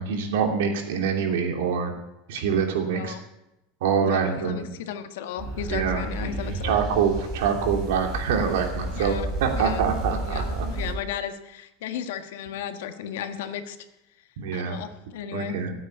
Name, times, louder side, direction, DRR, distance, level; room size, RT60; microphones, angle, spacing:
voice 1, 0.0-1.9 2.3-3.1 3.8-4.7 5.7-6.0 6.6-10.7 14.4-14.8 15.3-15.7, right 6 dB, 75° right, 3 dB, 3.0 m, -25 dB
voice 2, 4.0-6.8 8.9-9.9 10.2-13.8 14.5-15.6, left 9 dB, 75° left, 8 dB, 1.5 m, -35 dB
sound 1, 5.4-10.9, right 2 dB, 20° right, 3.6 m, -31 dB
14.0 x 8.6 x 9.6 m, 0.91 s
supercardioid pair, 175°, 0 cm